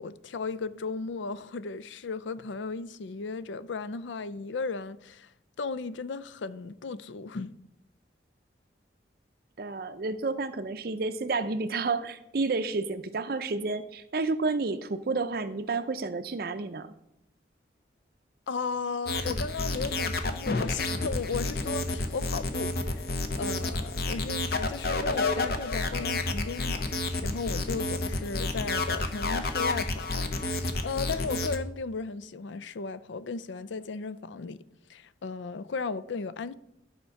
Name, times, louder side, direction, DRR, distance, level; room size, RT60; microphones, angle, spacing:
voice 1, 0.0-5.3 5.6-7.6 18.5-23.1 23.4-34.6 34.9-36.5, left 4 dB, 80° left, 0.5 m, -35 dB
voice 2, 9.6-16.9, right 3 dB, 55° right, 0.5 m, -30 dB
sound 1, 19.1-31.6, left 2 dB, 55° left, 0.8 m, -30 dB
12.0 x 4.4 x 5.7 m
head